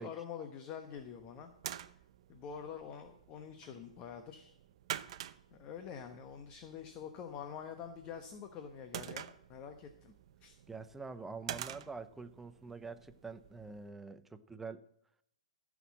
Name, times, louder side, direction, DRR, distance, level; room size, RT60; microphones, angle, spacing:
voice 1, 0.0-1.5 2.3-4.5 5.5-10.1 10.4-10.6, left 7 dB, 30° left, 1.1 m, -46 dB
sound 1, 0.8-13.9, right 11 dB, 55° right, 0.7 m, -49 dB
voice 2, 10.7-14.8, right 4 dB, 5° right, 0.7 m, -46 dB
15.5 x 6.3 x 7.4 m
hypercardioid pair, 135°, 4 cm